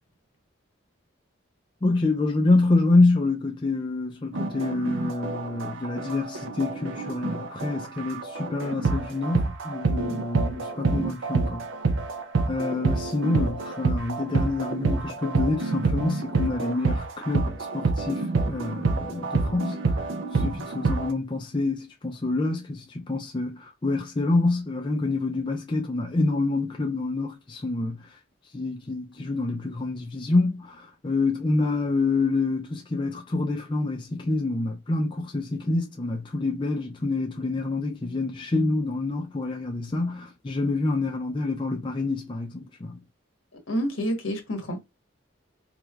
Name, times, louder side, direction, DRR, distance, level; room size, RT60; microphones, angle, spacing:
voice 1, 1.8-11.7 12.5-19.8 20.3-28.1 28.5-43.0, left 2 dB, 25° left, 0.4 m, -27 dB
sound 1, 4.3-21.1, right 3 dB, 65° right, 0.5 m, -27 dB
voice 2, 43.7-45.0, equal, 80° left, 1.1 m, -29 dB
4.0 x 3.2 x 2.3 m
head